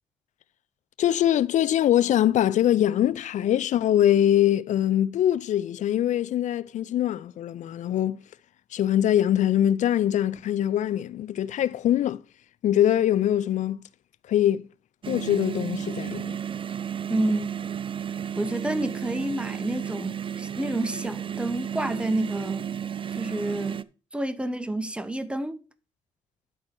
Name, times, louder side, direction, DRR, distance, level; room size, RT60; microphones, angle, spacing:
voice 1, 1.0-8.2 8.7-12.2 12.6-13.8 14.3-14.7 15.1-16.4, left 11 dB, 65° left, 0.4 m, -23 dB
sound 1, 15.0-23.8, right 8 dB, 40° right, 0.5 m, -33 dB
voice 2, 17.1-17.5 18.4-22.7 23.1-23.8 24.1-25.6, right 1 dB, 10° right, 1.0 m, -29 dB
11.0 x 4.3 x 4.5 m
supercardioid pair, 50°, 13 cm